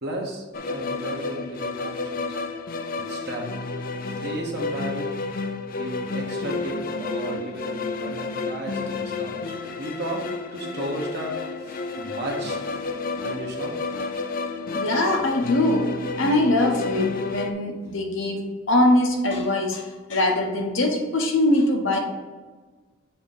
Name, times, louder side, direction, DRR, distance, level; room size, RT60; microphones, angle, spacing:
voice 1, 0.0-2.4 3.0-3.5 4.0-5.1 5.8-10.2 10.5-13.7, right 1 dB, 55° right, -1 dB, 1.2 m, -34 dB
sound 1, 0.5-17.5, left 3 dB, 45° left, 0.4 m, -31 dB
voice 2, 14.7-18.4 18.7-22.0, left 1 dB, 65° left, 2 dB, 1.0 m, -22 dB
6.9 x 2.9 x 5.4 m, 1.3 s
head